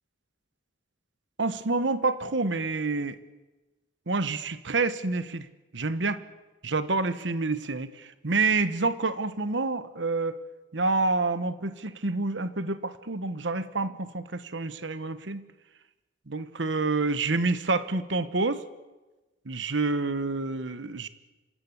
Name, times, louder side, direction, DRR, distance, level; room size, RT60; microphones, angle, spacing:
voice 1, 1.4-3.2 4.1-5.5 5.7-6.2 6.6-10.4 10.7-15.4 16.3-18.6 19.5-21.1, right 3 dB, 75° right, 13 dB, 1.2 m, -28 dB
26.5 x 15.5 x 9.7 m, 1.1 s
head